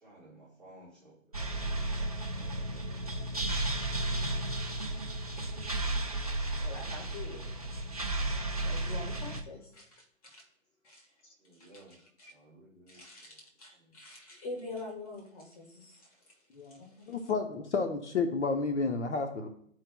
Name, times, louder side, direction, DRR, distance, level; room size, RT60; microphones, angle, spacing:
voice 1, 0.0-1.1 2.0-2.6 11.4-12.0 12.3-13.4 13.8-13.9, right 1 dB, ahead, -8 dB, 1.0 m, -57 dB
sound 1, 1.3-9.4, right 2 dB, 30° right, 0.4 m, -33 dB
voice 2, 6.6-7.7 8.3-10.4 10.8-12.3 12.9-16.2 16.7-17.1, left 2 dB, 25° left, 0 dB, 1.5 m, -46 dB
voice 3, 17.1-19.5, left 4 dB, 60° left, 5 dB, 0.8 m, -31 dB
13.5 x 4.7 x 2.2 m, 0.67 s
hypercardioid pair, 160°, 40 cm